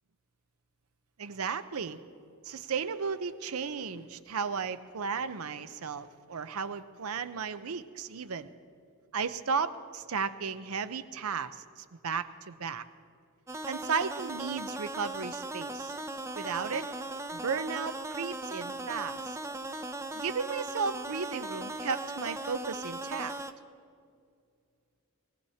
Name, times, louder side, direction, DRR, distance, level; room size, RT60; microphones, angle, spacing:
voice 1, 1.2-2.0 2.4-8.5 9.1-12.8 13.7-15.9 16.3-16.9 17.3-19.4 20.1-23.3, right 5 dB, 70° right, 12 dB, 0.6 m, -34 dB
sound 1, 13.5-23.5, right 2 dB, 15° right, 0.4 m, -38 dB
21.5 x 17.0 x 2.8 m, 2.3 s
head